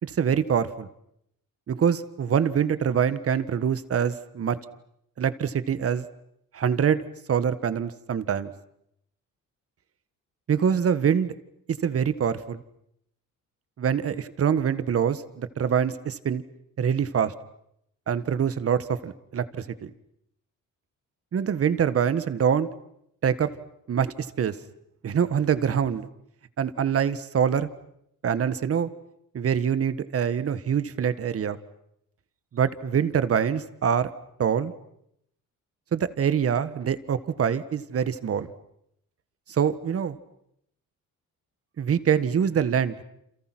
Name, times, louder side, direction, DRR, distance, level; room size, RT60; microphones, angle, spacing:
voice 1, 0.0-0.9 1.7-4.6 5.2-6.1 6.5-7.0 7.3-8.5 10.5-11.3 11.8-12.6 13.8-16.4 16.8-17.3 18.1-19.9 21.3-22.7 23.2-23.5 23.9-24.6 25.0-26.1 26.6-27.7 28.2-28.9 29.3-31.6 32.5-34.1 34.4-34.7 35.9-38.5 39.5-40.2 41.8-43.0, right 8 dB, 45° right, 14 dB, 1.5 m, -25 dB
29.5 x 28.0 x 6.1 m, 0.75 s
cardioid pair, 115°, 33 cm